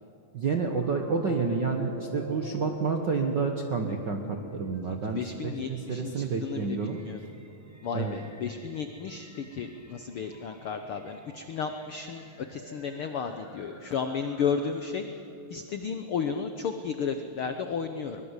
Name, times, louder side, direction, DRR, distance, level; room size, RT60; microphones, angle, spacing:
voice 1, 0.3-7.0 7.9-8.2, right 4 dB, 60° right, 4 dB, 1.1 m, -29 dB
sound 1, 0.6-15.2, right 1 dB, 10° right, 1.0 m, -46 dB
voice 2, 5.1-7.3 7.8-15.0 15.5-18.2, left 6 dB, 75° left, 7 dB, 1.2 m, -33 dB
23.0 x 21.0 x 8.2 m, 2.6 s
omnidirectional pair, 3.8 m